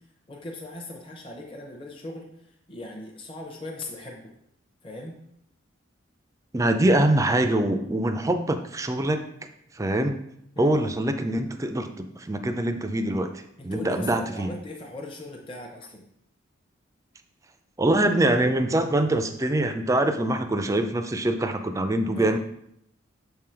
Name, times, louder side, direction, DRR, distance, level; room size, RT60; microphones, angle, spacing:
voice 1, 0.3-2.3 2.7-4.3 4.8-5.1 10.6-10.7 13.6-16.0 22.1-22.4, left 2 dB, 25° left, -1 dB, 0.7 m, -39 dB
voice 2, 6.5-9.2 9.7-10.2 10.6-13.3 13.6-14.5 17.8-22.4, right 1 dB, 15° right, 8 dB, 0.4 m, -24 dB
6.8 x 3.8 x 4.4 m, 0.77 s
head